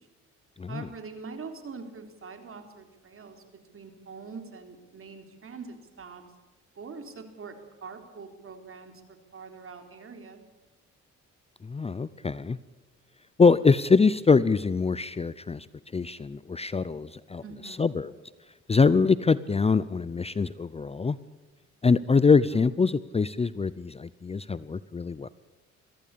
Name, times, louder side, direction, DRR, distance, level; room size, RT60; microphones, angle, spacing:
voice 1, 0.7-3.4 3.7-6.2 6.7-10.4 17.4-18.0 22.5-22.7, right 4 dB, 45° right, 6 dB, 3.9 m, -43 dB
voice 2, 11.6-12.6 13.4-15.7 15.9-18.1 18.7-21.2 21.8-25.3, left 4 dB, 20° left, 17 dB, 0.6 m, -24 dB
23.0 x 15.5 x 8.5 m, 1.1 s
cardioid pair, 90°, 30 cm